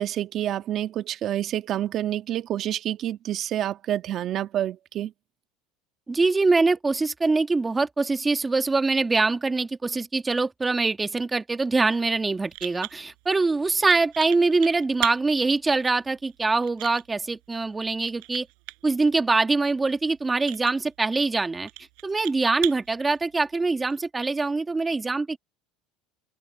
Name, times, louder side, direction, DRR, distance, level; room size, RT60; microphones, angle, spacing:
voice 1, 0.0-5.1, right 11 dB, 50° right, 1.5 m, -28 dB
voice 2, 6.1-18.5 18.8-21.7 22.0-25.4, right 3 dB, 15° right, 1.5 m, -24 dB
sound 1, 11.9-24.0, right 40 dB or more, 75° right, 8.0 m, -40 dB
supercardioid pair, 110°, 0 cm